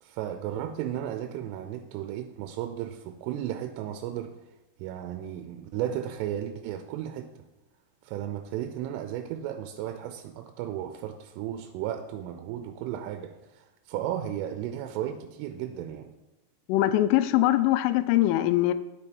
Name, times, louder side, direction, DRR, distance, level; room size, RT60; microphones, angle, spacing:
voice 1, 0.0-4.4 4.8-7.3 8.0-16.1, right 11 dB, 85° right, 7 dB, 3.1 m, -34 dB
voice 2, 16.7-18.7, left 14 dB, 85° left, 12 dB, 3.1 m, -22 dB
9.8 x 7.5 x 4.5 m, 1.0 s
omnidirectional pair, 5.7 m